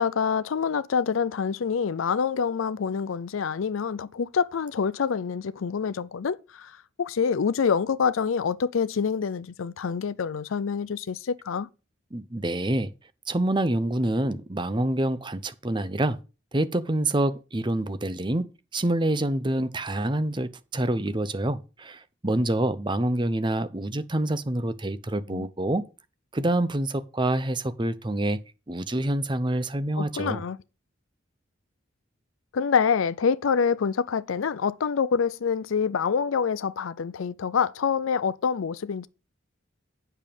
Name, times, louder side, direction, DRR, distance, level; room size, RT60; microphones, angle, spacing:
voice 1, 0.0-6.7 7.0-11.7 25.3-25.5 30.0-30.6 32.5-39.1, left 6 dB, 85° left, 0.5 m, -26 dB
voice 2, 12.1-12.9 13.3-16.2 16.5-25.9 26.3-28.4 28.7-30.4, right 1 dB, 25° right, 0.7 m, -27 dB
8.3 x 7.0 x 5.1 m
head